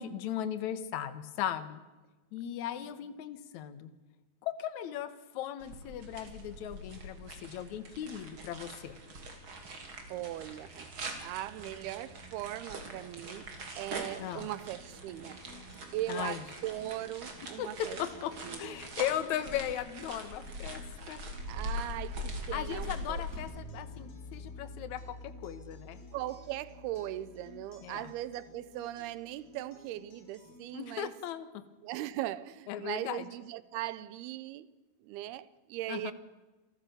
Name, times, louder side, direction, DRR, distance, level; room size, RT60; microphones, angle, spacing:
voice 1, 0.0-1.8 2.3-3.9 4.4-9.0 14.2-14.5 16.1-16.4 17.6-18.3 18.6-21.2 22.5-26.0 27.8-28.1 30.7-31.6 32.7-33.3 35.9-36.1, left 10 dB, 65° left, 2.1 m, -37 dB
sound 1, 5.6-23.4, right 1 dB, 35° right, 3.2 m, -43 dB
voice 2, 10.1-10.9 11.2-13.5 13.8-15.4 15.9-18.0 18.4-18.8 21.5-23.2 26.1-31.2 31.8-34.7 35.0-36.1, right 14 dB, 90° right, 2.8 m, -39 dB
Acoustic guitar, 14.7-30.7, left 3 dB, 85° left, 6.0 m, -57 dB
sound 2, 23.3-29.0, left 1 dB, 5° left, 2.9 m, -49 dB
28.0 x 14.0 x 6.9 m
omnidirectional pair, 4.4 m